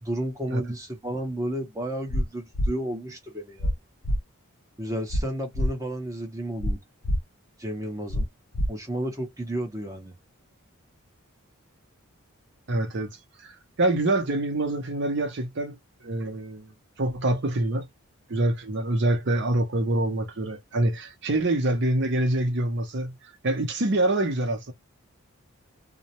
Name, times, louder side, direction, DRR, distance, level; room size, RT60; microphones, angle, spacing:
voice 1, 0.0-3.7 4.8-6.8 7.6-8.3 8.7-10.1, right 1 dB, 15° right, 0.7 m, -32 dB
sound 1, 2.1-2.2 2.5-2.7 3.6-3.7 4.0-4.2 5.1-5.2 5.5-5.7 6.6-6.7 7.0-7.2 8.1-8.2 8.5-8.7, equal, 85° left, 0.6 m, -24 dB
voice 2, 12.7-13.1 13.8-15.8 16.0-16.7 17.0-17.9 18.3-23.2 23.4-24.7, right 1 dB, 55° right, 0.7 m, -25 dB
2.3 x 2.0 x 2.8 m
head